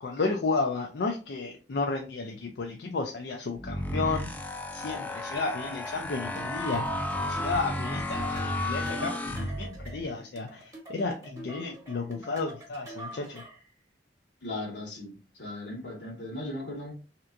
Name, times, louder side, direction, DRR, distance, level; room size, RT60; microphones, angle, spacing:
voice 1, 0.0-4.3 4.7-6.9 7.3-13.4, left 3 dB, 65° left, 0.4 m, -32 dB
sound 1, 3.6-10.0, left 1 dB, 10° left, 0.4 m, -33 dB
sound 2, 5.4-13.7, right 1 dB, 20° right, 0.9 m, -46 dB
voice 2, 14.4-16.9, left 2 dB, 85° left, 1.4 m, -37 dB
3.3 x 2.9 x 2.5 m
head